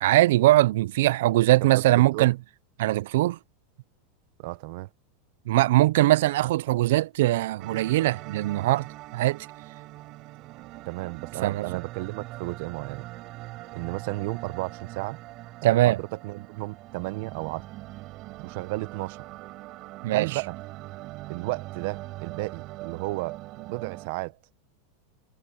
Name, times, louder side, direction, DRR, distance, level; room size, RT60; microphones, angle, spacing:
voice 1, 0.0-2.4 2.8-3.4 5.5-8.9 9.1-9.5 11.4-11.7 15.6-16.0 20.0-20.3, right 16 dB, 70° right, 0.3 m, -21 dB
voice 2, 1.7-2.3 4.4-4.9 10.9-13.1 13.7-15.2 15.6-17.6 18.4-19.2 20.1-20.6 21.3-24.4, right 21 dB, 55° right, 1.0 m, -33 dB
sound 1, 7.6-24.1, right 19 dB, 40° right, 4.2 m, -42 dB
supercardioid pair, 160°, 0 cm